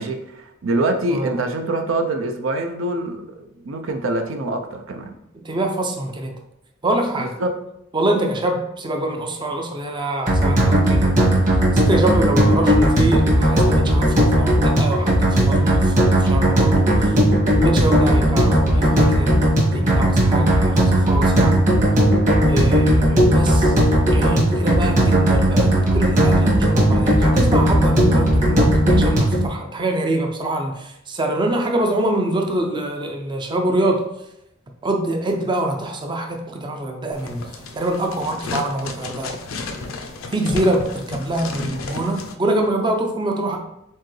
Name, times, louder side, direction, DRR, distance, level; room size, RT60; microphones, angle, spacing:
voice 1, 0.0-5.1 7.2-7.5, right 2 dB, 70° right, 5 dB, 0.5 m, -25 dB
voice 2, 5.4-6.3 6.8-7.4 7.9-17.2 17.6-19.4 19.7-21.6 22.5-23.7 24.1-34.1 34.8-39.3 40.3-43.6, right 1 dB, 25° right, 3 dB, 0.5 m, -25 dB
sound 1, 10.3-29.5, right 1 dB, 40° right, 1.4 m, -16 dB
sound 2, 37.1-42.3, left 3 dB, 75° left, 0.6 m, -32 dB
4.4 x 3.8 x 3.1 m, 0.82 s
head